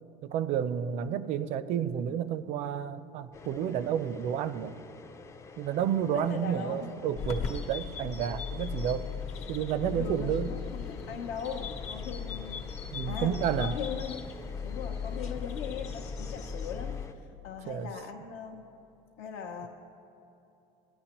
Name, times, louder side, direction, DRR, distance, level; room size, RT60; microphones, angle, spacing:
voice 1, 0.2-4.8 5.6-9.2 9.5-10.5 12.9-13.8 17.7-17.9 19.6-19.7, right 9 dB, 50° right, 14 dB, 0.4 m, -31 dB
sound 1, 3.3-17.1, left 4 dB, 20° left, 0.4 m, -49 dB
voice 2, 6.1-7.0 9.8-12.7 13.1-14.3 14.6-18.7 19.2-19.7, left 6 dB, 75° left, -1 dB, 0.8 m, -39 dB
sound 2, 7.1-17.1, left 6 dB, 50° left, 0.9 m, -37 dB
18.5 x 10.5 x 3.0 m, 2.9 s
cardioid pair, 150°, 15 cm